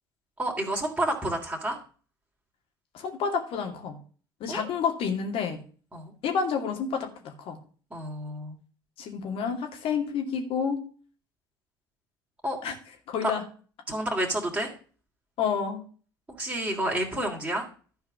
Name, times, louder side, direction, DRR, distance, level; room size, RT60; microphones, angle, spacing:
voice 1, 0.4-1.8 4.5-4.6 5.9-6.1 7.9-8.6 12.4-12.6 13.2-13.3 13.9-14.7 16.4-17.7, right 1 dB, 10° right, -2 dB, 3.1 m, -29 dB
voice 2, 2.9-4.0 4.4-5.6 6.2-7.6 9.0-10.8 12.6-12.7 13.1-13.4 15.4-15.8, left 6 dB, 50° left, 4 dB, 2.4 m, -29 dB
12.0 x 4.8 x 7.3 m, 0.40 s
hypercardioid pair, 65°, 12 cm